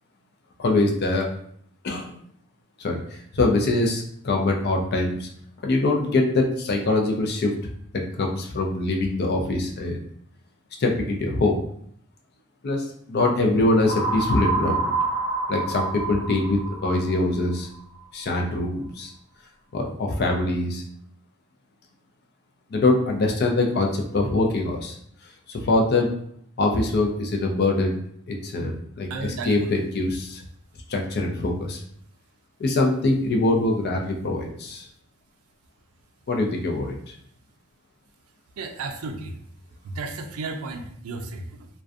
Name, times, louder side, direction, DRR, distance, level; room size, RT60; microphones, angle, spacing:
voice 1, 0.6-1.3 1.8-2.1 2.8-5.3 5.6-7.5 7.9-10.0 10.8-11.6 12.6-14.8 15.5-17.7 18.1-19.1 19.7-20.8 22.7-25.0 25.5-26.1 26.6-28.0 28.3-30.4 30.9-31.8 32.6-34.9 36.3-37.1, left 2 dB, 50° left, 1 dB, 0.4 m, -23 dB
sound 1, 13.9-17.7, right 3 dB, 80° left, 0.7 m, -28 dB
voice 2, 29.1-29.7 38.6-39.3 39.8-41.7, right 3 dB, 80° right, 5 dB, 0.4 m, -33 dB
2.5 x 2.1 x 2.4 m, 0.66 s
head